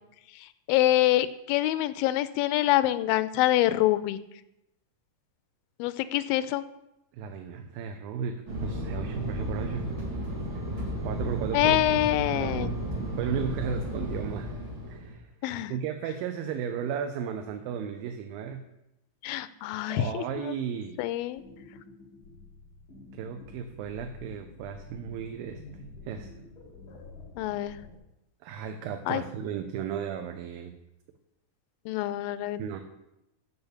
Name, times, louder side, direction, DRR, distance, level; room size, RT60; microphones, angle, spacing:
voice 1, 0.7-4.2 5.8-6.6 11.5-12.7 15.4-15.7 19.2-20.5 21.0-21.4 27.4-27.8 29.1-29.2 31.9-32.6, left 14 dB, 90° left, 14 dB, 2.4 m, -25 dB
voice 2, 7.1-9.9 11.0-11.8 12.3-12.8 13.2-14.5 14.9-15.3 15.7-18.6 19.9-21.0 23.1-25.6 26.0-26.3 28.4-30.7 32.6-32.8, right 7 dB, 85° right, 6 dB, 2.5 m, -34 dB
Fixed-wing aircraft airplane, 8.5-15.1, right 1 dB, 35° right, 4.2 m, -33 dB
sound 1, 21.4-28.0, left 2 dB, 40° left, 2.2 m, -48 dB
7.0 x 6.9 x 8.0 m, 0.88 s
omnidirectional pair, 4.1 m